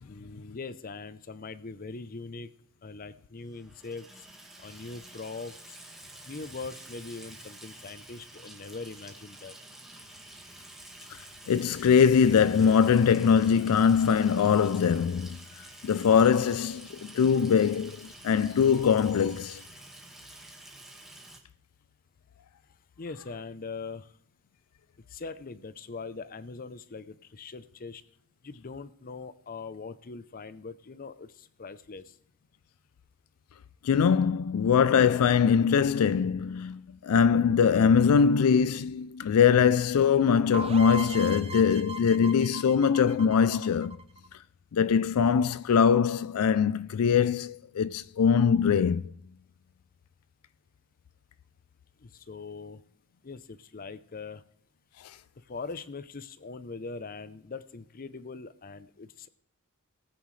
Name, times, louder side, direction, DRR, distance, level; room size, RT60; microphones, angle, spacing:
voice 1, 0.0-2.5 2.8-4.1 4.6-5.8 6.3-9.5 23.0-24.1 25.1-28.0 28.4-32.1 52.0-52.8 53.2-54.4 55.5-59.3, left 4 dB, 40° left, 0.6 m, -41 dB
Water tap faucet / Sink (filling or washing), 3.5-21.4, right 1 dB, ahead, 1.6 m, -49 dB
voice 2, 11.5-15.4 15.8-19.6 33.8-44.0 44.7-49.0, left 7 dB, 80° left, 0.4 m, -22 dB
sound 1, 40.5-44.3, right 2 dB, 25° right, 0.6 m, -38 dB
19.0 x 9.4 x 3.2 m
head